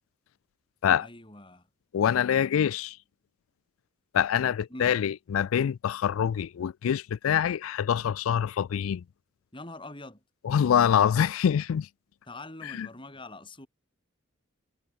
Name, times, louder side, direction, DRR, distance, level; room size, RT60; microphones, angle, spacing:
voice 1, 1.0-1.7 4.7-5.0 9.5-10.2 12.3-13.7, left 2 dB, 25° left, 6.0 m, -44 dB
voice 2, 1.9-3.0 4.1-9.0 10.4-11.9 12.8-12.9, left 8 dB, 85° left, 0.3 m, -25 dB
head